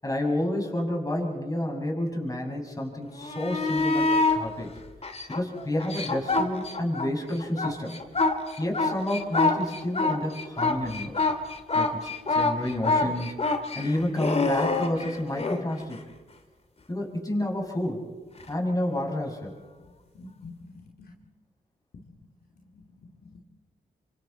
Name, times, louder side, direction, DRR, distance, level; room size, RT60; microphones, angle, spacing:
voice 1, 0.0-4.8 5.3-8.0 8.6-11.3 11.7-13.4 13.7-16.0 16.9-18.0 18.5-19.5, left 1 dB, 20° left, 0 dB, 7.0 m, -30 dB
sound 1, 3.2-4.4 5.0-7.1 7.4-15.6 18.4-18.5, left 3 dB, 35° left, 2.5 m, -26 dB
voice 2, 20.1-21.1 21.9-22.0 22.7-23.4, left 3 dB, 65° left, -1 dB, 2.9 m, -47 dB
26.5 x 25.5 x 4.4 m, 1.3 s
supercardioid pair, 55°, 17 cm